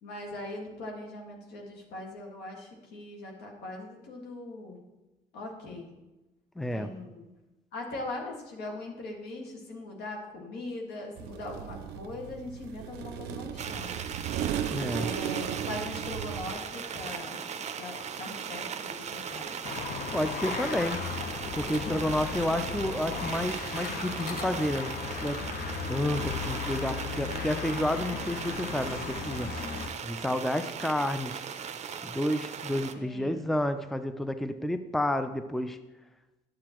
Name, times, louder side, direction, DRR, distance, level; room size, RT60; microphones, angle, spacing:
voice 1, 0.0-4.8 5.3-5.9 6.6-7.3 7.7-13.9 14.9-17.4 17.8-19.5 32.9-33.4, left 2 dB, 80° left, 0 dB, 1.8 m, -40 dB
voice 2, 6.6-6.9 14.7-15.1 20.1-21.0 21.6-25.4 25.9-29.5 30.0-31.5 32.0-35.8, left 1 dB, ahead, 10 dB, 0.4 m, -30 dB
sound 1, 11.2-16.5, right 10 dB, 90° right, 0.4 m, -36 dB
sound 2, 13.6-32.9, right 7 dB, 45° right, 0.6 m, -38 dB
sound 3, 19.6-29.9, left 5 dB, 65° left, 0.9 m, -36 dB
9.6 x 7.6 x 3.0 m, 1.1 s
cardioid pair, 85°, 17 cm